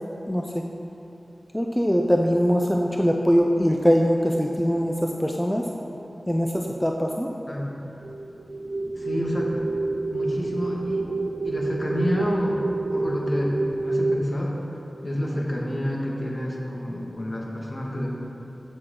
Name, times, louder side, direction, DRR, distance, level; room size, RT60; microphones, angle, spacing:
voice 1, 0.3-0.6 1.5-5.7 6.3-7.3, equal, 5° left, 1 dB, 0.6 m, -22 dB
voice 2, 7.5-7.8 8.9-9.8 10.1-11.0 11.4-12.6 12.9-14.5 15.0-18.1, equal, 45° left, -3 dB, 1.8 m, -29 dB
sound 1, 8.0-14.3, right 2 dB, 55° right, 0.4 m, -28 dB
14.5 x 6.2 x 3.9 m, 2.8 s
wide cardioid pair, 55°, 0 cm